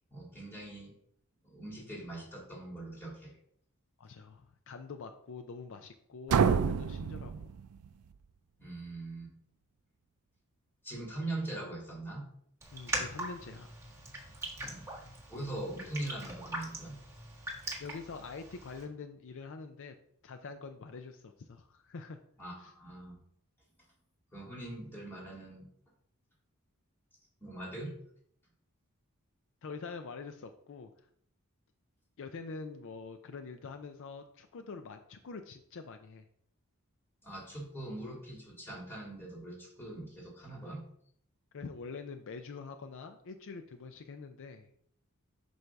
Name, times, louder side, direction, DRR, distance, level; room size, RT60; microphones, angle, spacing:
voice 1, 0.1-0.9 1.4-3.3 8.6-9.3 10.8-12.3 14.6-14.9 15.3-17.0 22.4-23.2 24.3-25.7 27.4-27.9 37.2-40.9, right 1 dB, 10° left, -3 dB, 2.3 m, -42 dB
voice 2, 4.0-7.5 12.7-13.8 17.8-19.9 20.2-22.2 22.6-22.7 29.6-30.9 32.2-36.2 41.5-44.7, left 4 dB, 60° left, 7 dB, 0.5 m, -45 dB
sound 1, 6.3-8.1, right 6 dB, 75° right, 0.4 m, -29 dB
Raindrop, 12.6-18.8, right 2 dB, 15° right, 1.4 m, -41 dB
7.8 x 2.7 x 5.7 m, 0.67 s
head